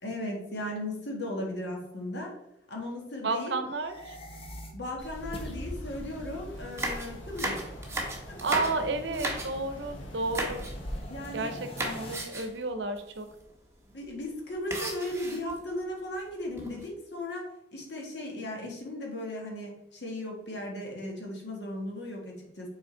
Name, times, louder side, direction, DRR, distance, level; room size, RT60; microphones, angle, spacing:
voice 1, 0.0-2.3 2.7-3.6 4.7-8.0 8.3-8.4 11.1-11.5 13.8-22.7, left 1 dB, 65° left, 0 dB, 1.6 m, -37 dB
voice 2, 3.2-4.2 8.4-10.7 11.3-13.3, right 3 dB, 70° right, 8 dB, 0.7 m, -32 dB
sound 1, 3.7-12.2, equal, 30° left, 0.9 m, -45 dB
sound 2, 5.0-11.0, equal, 80° left, 1.0 m, -43 dB
sound 3, 6.6-9.8 10.3-10.7 11.0-11.4 11.8-12.6 13.0-13.1 13.3-13.5 14.7-15.6 16.3-16.9, right 1 dB, 15° right, 0.9 m, -35 dB
6.2 x 4.0 x 3.8 m, 0.83 s
head